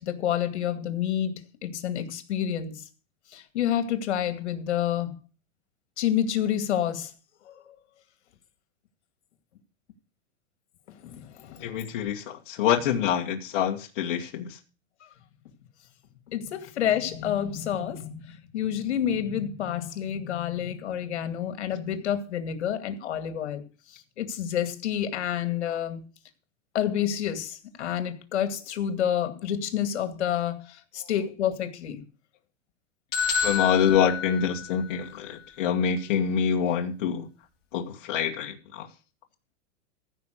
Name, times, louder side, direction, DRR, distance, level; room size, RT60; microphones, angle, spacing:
voice 1, 0.0-2.7 3.3-5.2 6.0-7.1 7.5-7.6 11.0-11.7 16.3-23.6 24.2-26.1 26.7-32.0, left 10 dB, 65° left, 2.3 m, -29 dB
voice 2, 11.6-14.6 33.4-37.3 37.7-38.9, left 8 dB, 40° left, 1.8 m, -26 dB
sound 1, 33.1-35.1, left 6 dB, 25° left, 3.9 m, -29 dB
15.0 x 5.7 x 6.5 m
supercardioid pair, 170°, 36 cm